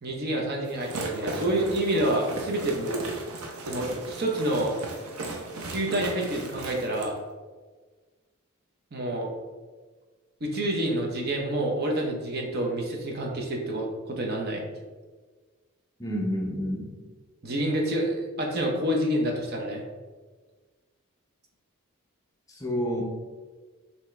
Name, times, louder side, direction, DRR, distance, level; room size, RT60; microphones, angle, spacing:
voice 1, 0.0-3.0 3.7-4.7 5.7-7.1 8.9-9.3 10.4-14.6 17.4-19.8, right 1 dB, 45° right, 0 dB, 0.7 m, -28 dB
sound 1, 0.6-7.1, right 2 dB, 85° right, 0.7 m, -36 dB
voice 2, 16.0-16.9 22.5-23.0, equal, 15° left, -2 dB, 0.6 m, -29 dB
5.7 x 2.8 x 3.2 m, 1.4 s
head